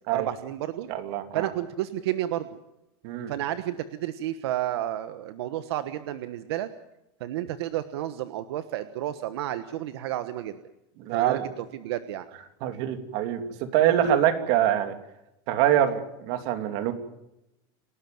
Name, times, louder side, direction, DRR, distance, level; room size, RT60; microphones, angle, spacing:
voice 1, 0.1-0.9 1.3-2.5 3.3-6.7 7.2-10.6 11.1-11.4 11.7-12.3, right 13 dB, 75° right, 11 dB, 1.3 m, -31 dB
voice 2, 0.9-1.5 3.0-3.3 11.0-11.5 12.6-13.4 13.7-14.9 15.5-16.9, right 11 dB, 45° right, 7 dB, 2.8 m, -24 dB
28.5 x 13.0 x 9.2 m, 0.88 s
supercardioid pair, 175°, 13 cm